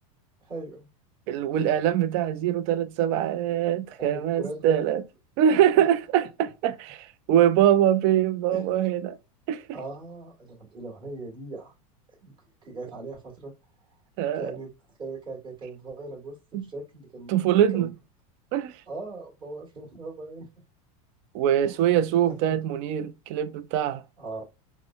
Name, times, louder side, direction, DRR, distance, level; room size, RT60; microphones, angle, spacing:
voice 1, 0.4-0.9 1.5-1.7 4.0-4.9 5.7-5.8 8.5-8.6 9.7-11.7 12.2-12.3 12.6-13.5 14.3-14.7 15.0-17.3 17.7-17.9 18.9-20.5 21.6-21.8 22.5-22.6 24.2-24.4, right 3 dB, 25° right, 1.5 m, -39 dB
voice 2, 1.3-5.0 5.4-9.2 9.5-9.6 14.2-14.5 16.5-16.7 17.3-17.9 18.5-18.8 21.3-24.0, right 10 dB, 50° right, 0.4 m, -23 dB
3.5 x 2.1 x 2.3 m
supercardioid pair, 130°, 19 cm